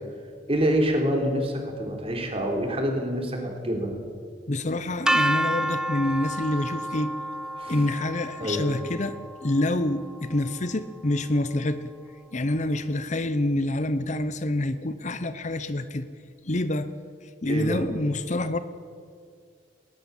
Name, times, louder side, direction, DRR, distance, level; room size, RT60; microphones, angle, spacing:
voice 1, 0.5-4.0 7.6-7.8 8.4-8.6 17.4-17.9, equal, 30° right, 2 dB, 3.9 m, -26 dB
voice 2, 4.5-7.1 7.7-9.2 9.4-11.9 12.3-16.1 16.4-16.9 17.4-18.6, left 1 dB, 40° left, 12 dB, 0.8 m, -27 dB
sound 1, 5.1-11.0, right 1 dB, 5° right, 0.5 m, -30 dB
20.0 x 19.5 x 7.3 m, 2.2 s
head